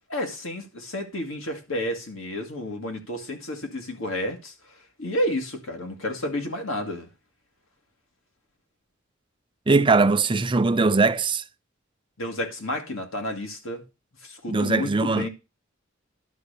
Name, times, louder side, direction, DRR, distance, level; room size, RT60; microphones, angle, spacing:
voice 1, 0.1-4.5 5.0-7.1 12.2-13.8 14.2-15.3, left 1 dB, 85° left, 2.0 m, -31 dB
voice 2, 9.7-11.4 14.5-15.3, right 3 dB, 25° right, 0.5 m, -20 dB
11.0 x 4.0 x 6.7 m
head